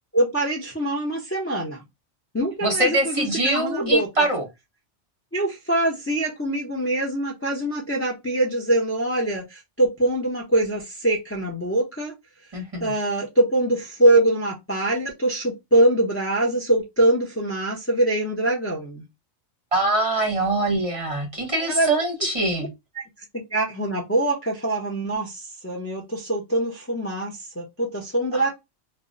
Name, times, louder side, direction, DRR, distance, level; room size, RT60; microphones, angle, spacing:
voice 1, 0.1-1.8 2.3-4.3 5.3-12.1 12.8-19.0 21.7-21.9 22.6-22.7 23.3-28.5, right 1 dB, 15° left, 0.5 m, -23 dB
voice 2, 2.6-4.4 12.5-12.9 19.7-22.7 28.3-28.5, right 2 dB, 30° right, 0.9 m, -23 dB
2.2 x 2.1 x 3.7 m
omnidirectional pair, 1.2 m